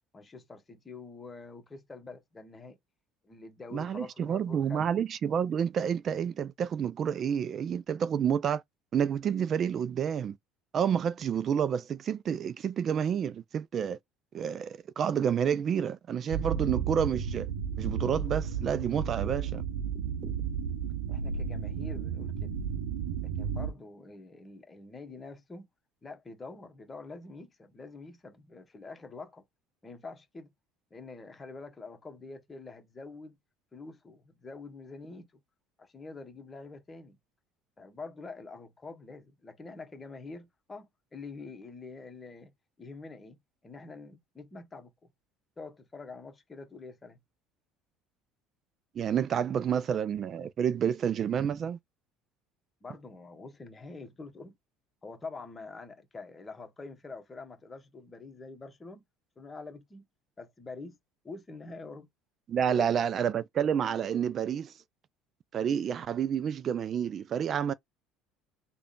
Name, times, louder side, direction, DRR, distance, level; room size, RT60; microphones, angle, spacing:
voice 1, 0.1-2.8 3.2-4.9 21.1-22.5 23.2-25.7 26.0-29.4 29.8-30.5 30.9-33.4 33.7-35.3 35.8-37.2 37.8-43.4 43.6-45.1 45.6-47.2 52.8-54.6 55.0-59.0 59.4-60.0 60.4-61.0 61.2-62.1 62.7-62.9, left 3 dB, 25° left, 1.2 m, -46 dB
voice 2, 3.7-8.6 8.9-10.4 10.7-14.0 14.3-17.5 17.8-19.6 20.2-20.3 49.0-51.8 62.5-64.7 65.5-67.7, right 8 dB, 45° right, 0.3 m, -29 dB
sound 1, 16.3-23.7, right 7 dB, 85° right, 0.7 m, -33 dB
3.5 x 2.3 x 3.7 m
hypercardioid pair, 75°, 0 cm